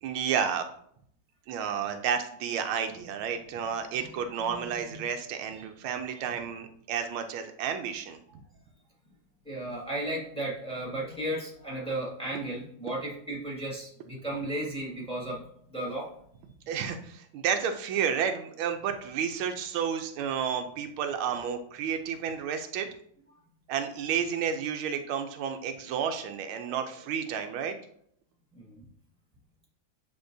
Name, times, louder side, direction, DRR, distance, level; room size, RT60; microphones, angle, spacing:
voice 1, 0.0-0.6 1.5-8.4 16.7-22.9 23.7-27.8, right 7 dB, 85° right, 7 dB, 1.5 m, -31 dB
voice 2, 9.5-15.4 15.7-16.1 26.7-26.8 28.7-28.8, right 1 dB, 5° left, -4 dB, 1.8 m, -34 dB
10.5 x 3.8 x 2.6 m, 0.67 s
omnidirectional pair, 2.2 m